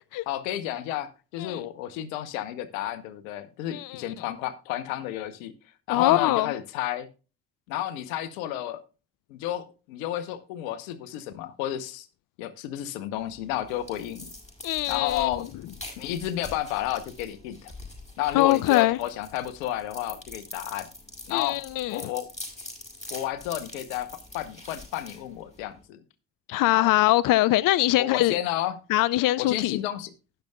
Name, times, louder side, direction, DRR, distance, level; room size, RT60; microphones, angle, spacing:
voice 1, 0.3-5.5 5.9-7.1 7.7-8.8 9.3-12.1 12.4-14.3 14.9-15.5 16.0-17.7 18.2-20.9 21.3-21.6 21.9-22.3 23.1-26.0 26.7-26.9 28.0-28.8 29.4-30.1, left 12 dB, 85° left, 0.9 m, -31 dB
voice 2, 3.7-4.0 5.9-6.5 14.6-15.4 18.3-19.0 21.3-22.1 26.5-28.3 28.9-29.8, left 16 dB, 55° left, 0.5 m, -23 dB
sound 1, 13.2-25.8, left 2 dB, 15° left, 6.6 m, -44 dB
19.5 x 6.7 x 2.3 m
hypercardioid pair, 50°, 39 cm